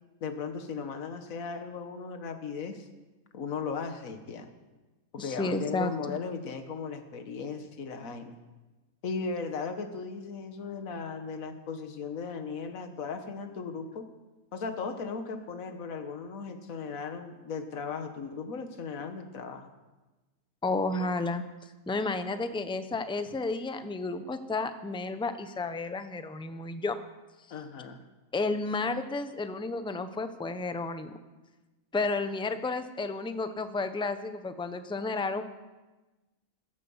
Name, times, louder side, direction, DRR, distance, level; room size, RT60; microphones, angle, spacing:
voice 1, 0.2-2.9 3.3-4.5 5.1-8.3 9.0-14.1 14.5-19.7 20.9-21.2 27.5-28.0, left 5 dB, 75° left, 7 dB, 1.7 m, -37 dB
voice 2, 5.2-6.1 20.6-21.4 21.9-27.0 28.3-31.1 31.9-35.4, left 3 dB, 5° left, 9 dB, 0.6 m, -32 dB
16.5 x 12.0 x 7.1 m, 1.1 s
omnidirectional pair, 1.5 m